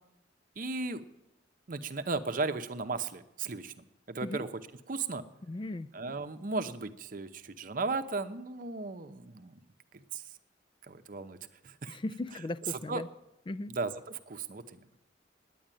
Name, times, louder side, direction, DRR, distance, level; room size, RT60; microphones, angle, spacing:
voice 1, 0.6-1.0 1.7-3.7 4.1-4.5 4.9-5.2 5.9-9.6 10.1-10.2 10.9-11.4 11.6-12.0 12.9-13.0 13.7-14.8, right 3 dB, 50° right, 9 dB, 0.7 m, -35 dB
voice 2, 5.5-5.9 11.9-13.1 13.5-13.7, left 2 dB, 30° left, 16 dB, 0.4 m, -37 dB
10.0 x 9.4 x 9.0 m, 0.86 s
head